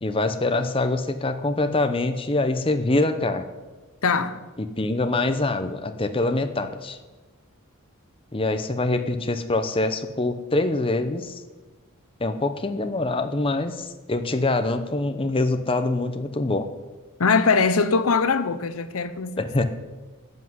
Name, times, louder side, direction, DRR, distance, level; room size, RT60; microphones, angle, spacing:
voice 1, 0.0-3.5 4.8-7.0 8.3-11.4 12.2-16.7 19.4-19.6, left 2 dB, 25° left, 0.7 m, -24 dB
voice 2, 4.0-4.4 17.2-19.4, left 4 dB, 70° left, 0.8 m, -21 dB
15.0 x 5.8 x 9.5 m
head